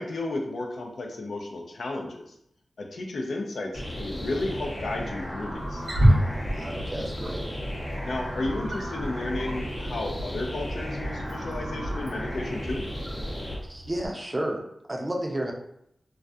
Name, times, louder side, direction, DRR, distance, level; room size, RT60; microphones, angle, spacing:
voice 1, 0.0-2.3 2.8-5.8 8.0-12.8, left 2 dB, 85° left, 1 dB, 0.4 m, -33 dB
sound 1, 3.7-13.5, equal, 40° left, 1.0 m, -35 dB
Wild animals, 5.5-14.1, equal, 80° right, 0.7 m, -30 dB
voice 2, 6.5-7.5 13.7-15.5, right 1 dB, 25° right, 1 dB, 0.4 m, -32 dB
2.3 x 2.1 x 2.6 m, 0.75 s
wide cardioid pair, 110°, 0 cm